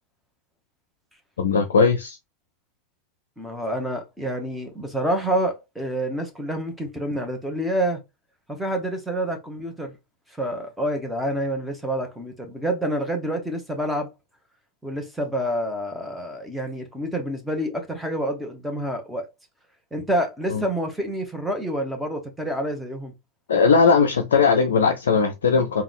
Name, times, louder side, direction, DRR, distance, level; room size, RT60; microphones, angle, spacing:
voice 1, 1.4-2.2 20.5-20.6 23.5-25.8, left 5 dB, 65° left, 0.4 m, -19 dB
voice 2, 3.4-8.0 8.5-9.9 10.4-14.1 14.8-19.3 19.9-23.1, right 1 dB, 5° right, 1.0 m, -28 dB
3.6 x 2.2 x 3.5 m
figure-of-eight pair, 90°, 0 cm